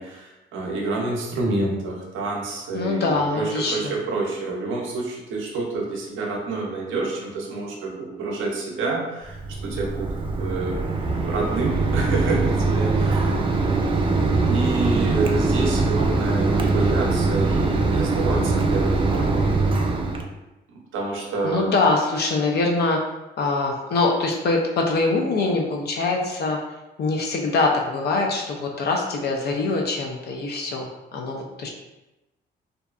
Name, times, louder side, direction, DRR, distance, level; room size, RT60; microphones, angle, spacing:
voice 1, 0.0-10.8 11.2-13.4 14.5-19.5 20.7-21.7, right 3 dB, 80° right, -1 dB, 0.6 m, -28 dB
voice 2, 2.7-3.9 21.4-23.0 23.4-26.6 27.0-31.7, left 3 dB, 55° left, 0 dB, 0.4 m, -23 dB
Mechanisms, 9.3-20.2, right 3 dB, 25° right, 0.3 m, -22 dB
2.6 x 2.2 x 2.4 m, 1.0 s
cardioid pair, 90°, 20 cm